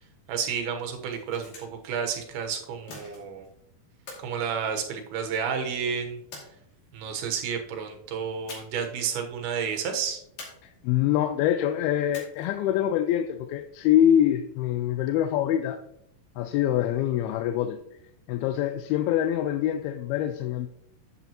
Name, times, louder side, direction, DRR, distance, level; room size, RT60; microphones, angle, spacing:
voice 1, 0.3-3.5 4.2-6.2 6.9-10.2, right 6 dB, 85° right, 4 dB, 3.2 m, -31 dB
sound 1, 1.0-1.9 2.9-3.5 4.1-5.3 6.3-7.1 8.5-8.9 9.2-9.3 10.4-11.1 12.1-12.7, left 3 dB, 65° left, 4.1 m, -46 dB
voice 2, 10.6-15.8 16.4-17.8 18.3-20.7, left 11 dB, 90° left, 6 dB, 2.5 m, -25 dB
10.5 x 8.2 x 2.9 m, 0.73 s
omnidirectional pair, 4.3 m